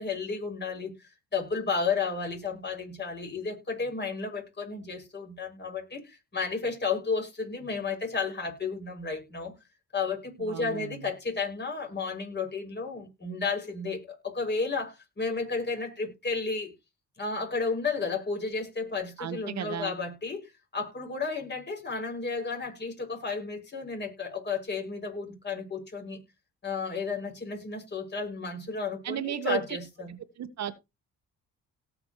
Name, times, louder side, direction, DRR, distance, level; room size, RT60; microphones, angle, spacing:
voice 1, 0.0-9.5 9.9-16.7 17.2-26.2 26.6-30.1, left 4 dB, 35° left, 6.7 m, -32 dB
voice 2, 10.4-11.1 19.2-19.9 29.0-29.8 30.4-30.8, right 9 dB, 60° right, 1.4 m, -34 dB
18.0 x 6.1 x 3.2 m
cardioid pair, 90°, 30 cm